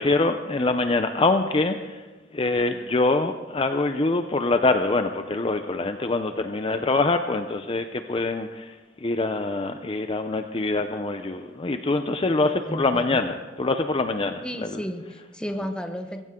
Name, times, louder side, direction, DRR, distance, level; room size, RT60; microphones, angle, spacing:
voice 1, 0.0-2.0 2.3-8.7 9.0-14.8, left 2 dB, 30° left, 7 dB, 0.6 m, -24 dB
voice 2, 12.4-13.2 14.4-16.2, equal, 5° left, 6 dB, 1.1 m, -33 dB
23.0 x 15.5 x 3.7 m, 1.3 s
head